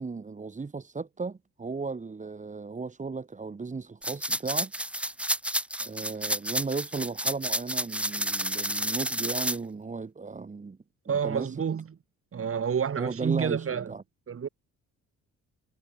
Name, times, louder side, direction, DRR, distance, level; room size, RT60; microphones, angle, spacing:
voice 1, 0.0-4.7 5.0-5.1 5.8-10.8 11.1-11.6 13.0-14.0, right 4 dB, 25° right, 1.7 m, -35 dB
sound 1, 4.0-9.6, right 1 dB, 5° right, 2.5 m, -30 dB
voice 2, 11.1-11.9 12.3-13.9 14.3-14.5, right 7 dB, 45° right, 4.7 m, -29 dB
cardioid pair, 90°, 30 cm